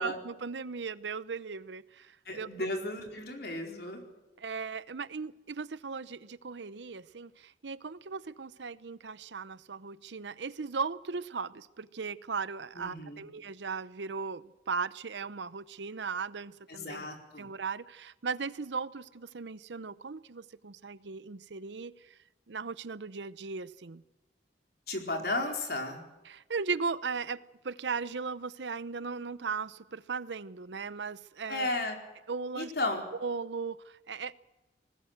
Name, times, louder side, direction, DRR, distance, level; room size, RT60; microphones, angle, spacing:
voice 1, 0.0-2.5 4.4-17.1 17.4-21.9 22.5-24.0 26.2-31.7 32.3-32.7 33.2-34.3, right 5 dB, 80° right, 17 dB, 0.8 m, -37 dB
voice 2, 2.3-4.0 12.7-13.2 16.7-17.5 24.9-26.0 31.5-32.0 32.6-33.0, left 2 dB, 60° left, 3 dB, 4.4 m, -34 dB
20.5 x 19.0 x 8.0 m, 1.1 s
head